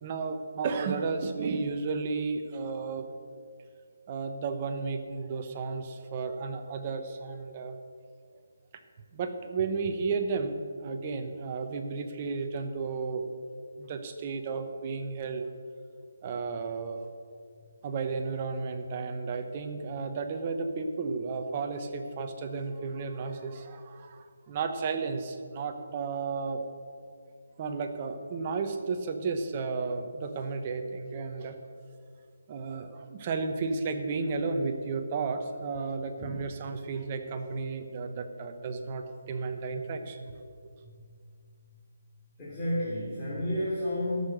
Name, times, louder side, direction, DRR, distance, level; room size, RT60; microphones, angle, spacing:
voice 1, 0.0-3.1 4.1-7.8 9.1-13.2 13.8-15.5 16.2-17.1 17.8-26.6 27.6-31.6 32.5-40.4, right 4 dB, 25° right, 6 dB, 0.9 m, -33 dB
voice 2, 42.4-44.3, left 1 dB, 15° left, -11 dB, 2.8 m, -31 dB
14.0 x 6.7 x 6.6 m, 2.2 s
hypercardioid pair, 170°, 0 cm